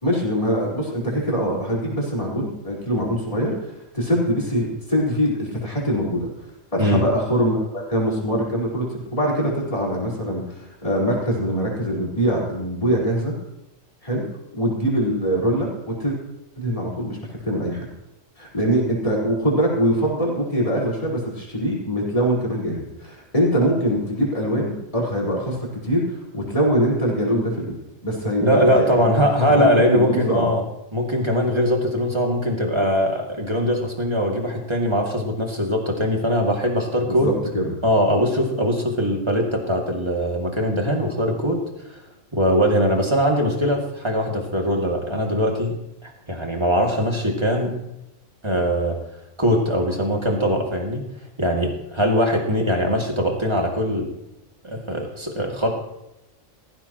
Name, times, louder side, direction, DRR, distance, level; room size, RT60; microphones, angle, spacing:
voice 1, 0.0-6.3 6.7-13.3 14.0-14.2 14.6-16.2 16.6-17.2 17.4-17.8 18.4-25.6 25.8-27.7 28.0-29.2 29.5-30.5 37.1-37.7, equal, 25° left, -4 dB, 4.7 m, -23 dB
voice 2, 28.4-30.6 30.9-37.3 37.8-41.6 41.9-42.0 42.3-45.8 46.0-47.7 48.4-49.0 49.4-51.0 51.4-54.1 54.6-55.8, equal, 20° right, 0 dB, 2.6 m, -21 dB
17.5 x 15.5 x 3.1 m, 0.87 s
omnidirectional pair, 1.4 m